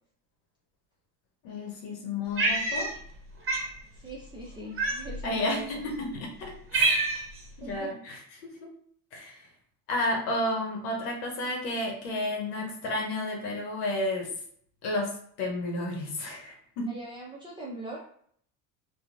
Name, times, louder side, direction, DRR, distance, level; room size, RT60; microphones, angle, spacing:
voice 1, 1.4-2.9 5.2-7.2 7.6-8.4 9.1-9.5 9.9-14.3 14.8-16.9, left 1 dB, 75° left, 0 dB, 0.9 m, -32 dB
Cat, 2.4-3.2 3.5-3.7 4.8-5.3 6.0-6.1 6.4-7.4, right 3 dB, 25° right, 1.0 m, -27 dB
voice 2, 4.0-5.8 7.6-7.9 16.9-18.0, right 1 dB, 10° right, -5 dB, 0.6 m, -41 dB
2.9 x 2.3 x 2.5 m, 0.62 s
hypercardioid pair, 75°, 49 cm